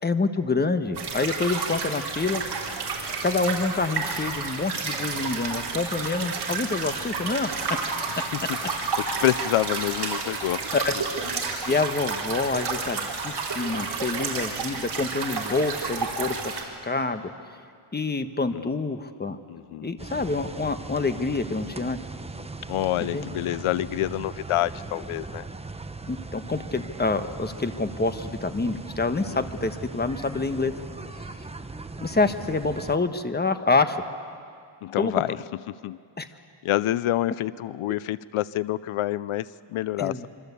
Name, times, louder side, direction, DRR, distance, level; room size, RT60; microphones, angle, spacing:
voice 1, 0.0-2.4 3.2-7.5 10.7-10.9 11.6-17.3 17.9-19.4 19.8-22.0 23.0-23.3 26.1-30.7 32.0-34.0 35.0-35.1 36.2-36.3 40.0-40.3, left 3 dB, 20° left, 9 dB, 1.3 m, -27 dB
sound 1, 0.9-16.6, right 4 dB, 50° right, 4.2 m, -30 dB
voice 2, 8.2-10.8 18.5-18.7 19.5-20.0 22.7-25.5 29.1-29.4 34.8-36.0 36.6-40.3, left 14 dB, 80° left, 18 dB, 0.6 m, -28 dB
sound 2, 20.0-33.0, right 3 dB, 10° right, 1.0 m, -39 dB
26.0 x 25.0 x 8.4 m, 2.3 s
wide cardioid pair, 120°, 49 cm